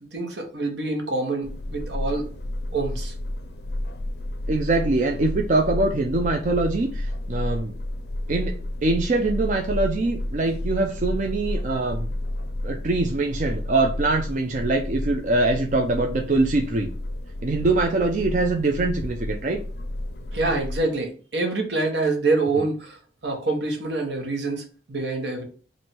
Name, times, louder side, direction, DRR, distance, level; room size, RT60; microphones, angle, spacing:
voice 1, 0.1-2.3 2.7-3.1 20.3-25.4, right 3 dB, 75° right, 3 dB, 1.1 m, -26 dB
sound 1, 1.4-20.8, left 1 dB, 60° left, 0.5 m, -31 dB
voice 2, 4.5-7.7 8.3-8.6 8.8-12.1 12.6-16.9 17.4-19.6, right 2 dB, 45° right, 2 dB, 0.4 m, -23 dB
3.2 x 2.6 x 4.3 m, 0.38 s
head